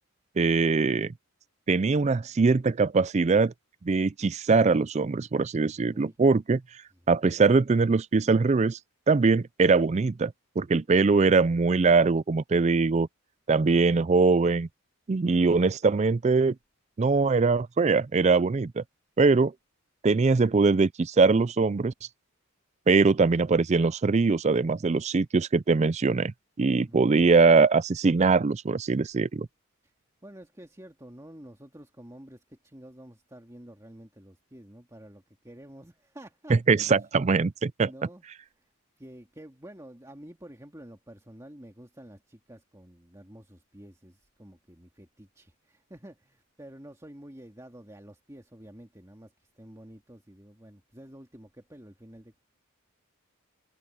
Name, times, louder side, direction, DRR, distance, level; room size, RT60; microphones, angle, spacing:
voice 1, 0.4-1.1 1.7-3.5 3.8-6.6 7.1-8.8 9.1-13.1 13.5-14.7 15.1-16.5 17.0-18.8 19.2-19.5 20.0-21.9 22.9-29.5 36.5-37.9, right 4 dB, 30° right, 0.4 m, -22 dB
voice 2, 5.7-6.2 6.9-7.0 26.7-27.1 29.8-29.9 30.2-37.0 37.8-38.6 39.0-52.4, right 1 dB, 15° right, 2.1 m, -49 dB
head